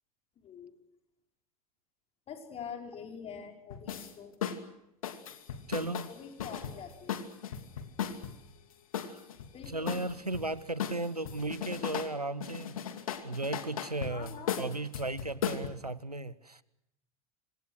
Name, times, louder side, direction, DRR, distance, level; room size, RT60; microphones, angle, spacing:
voice 1, 2.3-4.3 6.1-7.2 9.5-10.0 14.0-14.7, left 7 dB, 30° left, 5.3 m, -45 dB
sound 1, 3.7-4.1 4.4-4.6 5.0-8.5 8.9-10.5 10.8-12.1 12.4-15.7, left 8 dB, 65° left, 2.7 m, -37 dB
voice 2, 5.7-6.1 9.1-9.2 9.7-12.7 13.2-16.6, right 2 dB, 90° right, 1.1 m, -36 dB
26.5 x 26.0 x 6.5 m
figure-of-eight pair, 80°, 19 cm